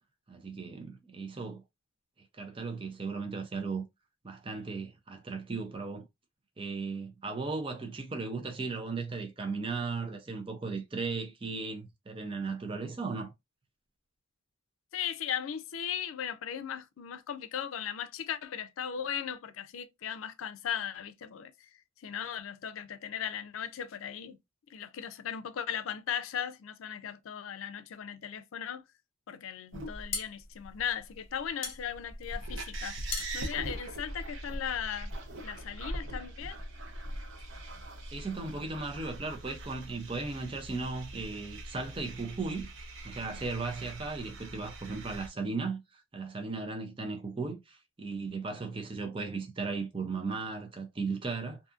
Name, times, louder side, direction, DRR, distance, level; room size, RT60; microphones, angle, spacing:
voice 1, 0.3-1.6 2.4-3.8 4.2-6.1 6.6-13.3 38.1-42.7 43.0-51.6, right 4 dB, 25° right, 0.4 m, -36 dB
voice 2, 14.9-21.7 22.0-24.4 24.7-28.8 29.3-33.0 33.3-35.1 35.4-36.6, left 8 dB, 90° left, 0.4 m, -37 dB
sound 1, 29.7-34.7, left 5 dB, 65° left, 0.8 m, -41 dB
sound 2, 29.7-45.3, right 1 dB, 70° right, 0.7 m, -42 dB
2.6 x 2.4 x 2.4 m
head